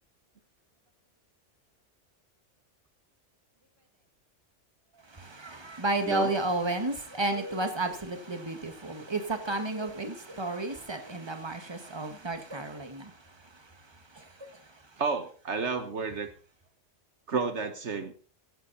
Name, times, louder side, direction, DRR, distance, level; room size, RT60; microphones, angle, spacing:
voice 1, 5.0-15.0, right 2 dB, 20° right, 1.8 m, -33 dB
voice 2, 15.0-16.3 17.3-18.1, right 4 dB, 65° right, 1.5 m, -31 dB
16.5 x 11.0 x 4.1 m
omnidirectional pair, 1.3 m